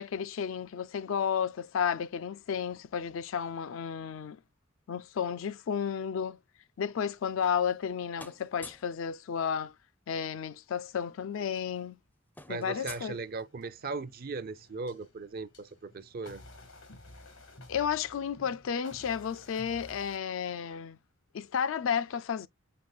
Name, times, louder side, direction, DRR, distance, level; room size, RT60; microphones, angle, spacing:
voice 1, 0.0-4.4 4.9-6.4 6.8-9.7 10.1-12.0 12.5-13.2 17.7-21.0 21.3-22.5, left 7 dB, 70° left, 0.4 m, -32 dB
sound 1, 7.1-7.9 8.1-9.0 10.3-10.4 10.7-10.9 11.2-13.8, left 2 dB, 10° left, 0.4 m, -50 dB
voice 2, 12.5-16.4, right 4 dB, 45° right, 0.5 m, -38 dB
sound 2, 12.8-20.2, left 1 dB, 90° left, 1.5 m, -53 dB
6.7 x 3.2 x 2.3 m
head